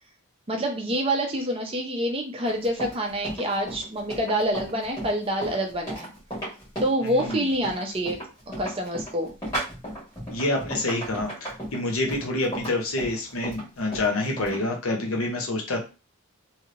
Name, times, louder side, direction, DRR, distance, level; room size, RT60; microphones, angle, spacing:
voice 1, 0.5-6.1 6.8-8.2 8.6-9.3, right 1 dB, 25° right, 2 dB, 0.6 m, -27 dB
Run, 2.5-14.6, right 1 dB, 15° left, 1.6 m, -35 dB
voice 2, 7.0-7.4 10.3-15.8, left 2 dB, 70° left, 1 dB, 0.8 m, -27 dB
3.2 x 2.7 x 2.6 m, 0.31 s
head